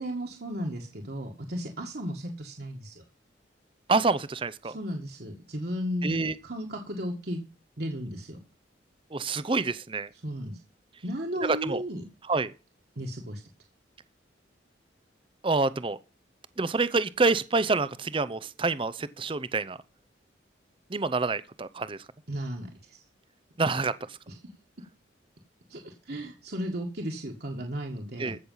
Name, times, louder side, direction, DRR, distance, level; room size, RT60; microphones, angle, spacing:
voice 1, 0.0-3.0 4.6-7.4 7.8-8.4 10.2-10.6 11.0-12.0 12.9-13.4 22.3-23.0 24.3-24.4 25.7-28.3, equal, 55° right, 1.8 m, -35 dB
voice 2, 3.9-4.8 6.0-6.3 9.1-10.1 11.4-11.8 12.3-12.5 15.4-16.0 16.6-19.8 20.9-22.0 23.6-24.2 28.2-28.4, right 3 dB, 30° right, 0.6 m, -27 dB
15.0 x 6.5 x 5.5 m
head